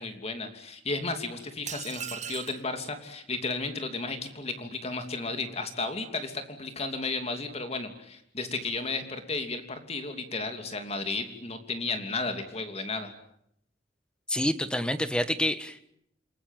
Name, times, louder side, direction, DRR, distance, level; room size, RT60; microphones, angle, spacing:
voice 1, 0.0-13.1, left 3 dB, 35° left, 7 dB, 3.0 m, -33 dB
sound 1, 1.7-2.7, right 9 dB, 40° right, 2.0 m, -38 dB
voice 2, 14.3-15.9, left 1 dB, 5° left, 11 dB, 1.5 m, -28 dB
28.5 x 20.5 x 9.1 m, 0.73 s
head